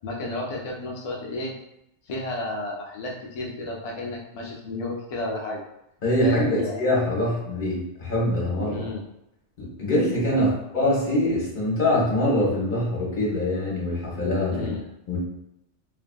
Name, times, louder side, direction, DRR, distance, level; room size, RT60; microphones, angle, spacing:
voice 1, 0.0-1.5 2.1-5.6 6.2-6.8 8.7-9.0 10.3-10.5 14.5-14.8, left 2 dB, 65° left, -2 dB, 0.3 m, -32 dB
voice 2, 6.0-8.9 9.6-14.7 15.1-15.2, left 1 dB, 45° left, -5 dB, 1.0 m, -24 dB
2.7 x 2.6 x 2.2 m, 0.83 s
omnidirectional pair, 1.2 m